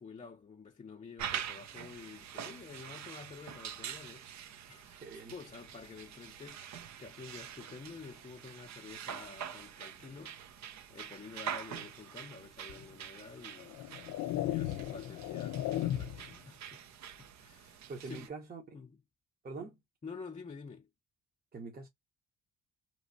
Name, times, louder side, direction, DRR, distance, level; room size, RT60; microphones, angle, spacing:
voice 1, 0.0-6.7 7.0-10.4 10.9-13.8 14.4-16.8 17.4-18.3 18.7-19.0 20.0-20.9, left 5 dB, 25° left, 0.6 m, -49 dB
sound 1, 1.2-18.3, right 9 dB, 65° right, 0.7 m, -45 dB
voice 2, 5.0-5.3 17.9-18.7 19.4-19.8 21.5-21.9, right 3 dB, 30° right, 0.9 m, -44 dB
sound 2, 12.7-12.8 13.6-16.4, left 13 dB, 85° left, 0.5 m, -36 dB
3.0 x 3.0 x 2.6 m
cardioid pair, 90°, 30 cm